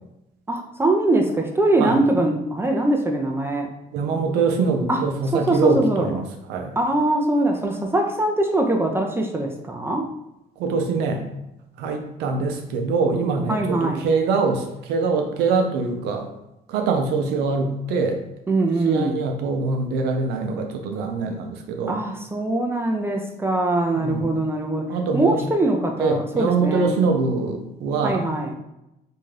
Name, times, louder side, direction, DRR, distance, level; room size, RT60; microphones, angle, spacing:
voice 1, 0.5-3.7 4.9-5.0 5.3-6.1 6.8-10.0 13.5-14.1 18.5-19.3 21.9-24.9 25.1-27.0 28.0-28.5, right 2 dB, 15° right, 2 dB, 0.3 m, -22 dB
voice 2, 3.9-6.7 10.6-11.2 11.8-16.3 16.7-18.2 18.8-22.0 23.9-24.4 24.9-25.4 26.0-28.2, right 4 dB, 85° right, 4 dB, 0.5 m, -23 dB
2.6 x 2.3 x 3.2 m, 0.89 s
cardioid pair, 110°, 17 cm